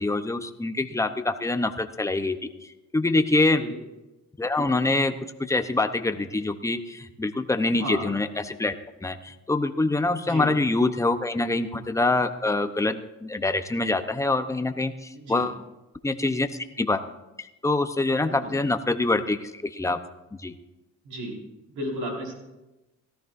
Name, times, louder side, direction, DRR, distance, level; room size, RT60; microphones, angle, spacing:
voice 1, 0.0-3.6 4.4-8.7 9.0-15.6 16.0-17.0 17.4-20.0 20.4-20.5, left 2 dB, 10° left, 8 dB, 0.8 m, -25 dB
voice 2, 15.1-15.4 18.4-18.5 21.0-21.3 21.7-22.3, right 1 dB, 75° right, -2 dB, 5.2 m, -33 dB
18.0 x 13.5 x 2.6 m, 1.0 s
cardioid pair, 90°, 30 cm